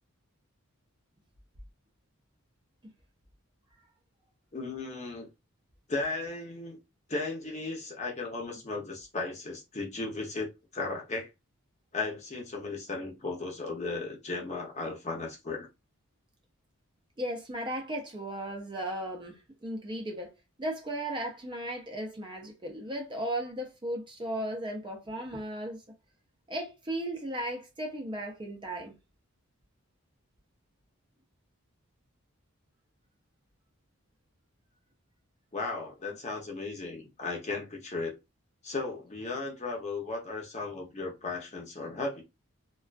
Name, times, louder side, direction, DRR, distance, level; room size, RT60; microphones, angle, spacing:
voice 1, 4.5-5.3 5.9-6.8 7.1-11.3 11.9-15.7 35.5-38.2 38.6-42.2, left 3 dB, 30° left, 0.7 m, -35 dB
voice 2, 17.2-20.3 20.6-25.8 26.5-28.9, right 1 dB, 20° right, 0.5 m, -36 dB
2.4 x 2.2 x 2.4 m
head